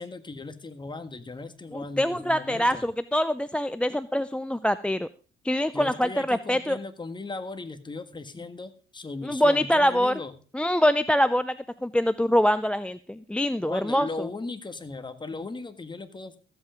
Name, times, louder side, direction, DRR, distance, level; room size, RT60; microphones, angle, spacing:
voice 1, 0.0-2.9 5.7-10.3 13.6-16.4, left 3 dB, 25° left, 10 dB, 1.6 m, -37 dB
voice 2, 1.7-5.1 5.4-6.8 9.2-10.1 10.5-11.6 11.8-14.3, equal, 5° left, 15 dB, 0.5 m, -24 dB
14.5 x 8.1 x 5.1 m, 0.38 s
cardioid pair, 90°, 20 cm